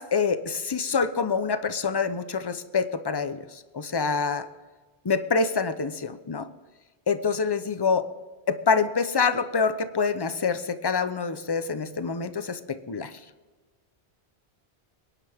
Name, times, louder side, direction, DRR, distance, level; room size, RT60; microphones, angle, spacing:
voice 1, 0.0-3.4 3.7-4.5 5.0-6.5 7.1-8.0 8.5-13.1, left 5 dB, 25° left, 11 dB, 0.7 m, -26 dB
22.0 x 11.0 x 3.5 m, 1.3 s
omnidirectional pair, 1.1 m